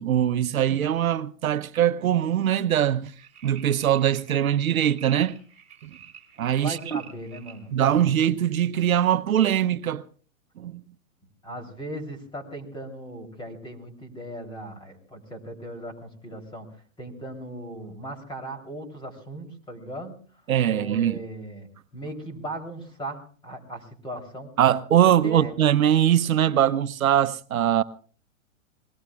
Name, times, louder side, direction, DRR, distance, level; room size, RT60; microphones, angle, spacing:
voice 1, 0.0-3.1 3.4-5.4 5.8-5.9 6.4-7.0 7.7-10.0 10.6-10.8 20.5-21.2 24.6-27.8, right 10 dB, 85° right, 0.9 m, -22 dB
sound 1, 3.2-7.6 8.2-8.3, right 8 dB, 15° right, 5.3 m, -48 dB
voice 2, 6.6-8.1 11.4-20.1 20.7-21.7 21.9-24.5 25.0-25.5, right 1 dB, 10° left, 3.4 m, -38 dB
27.5 x 21.0 x 2.4 m
hypercardioid pair, 140°, 41 cm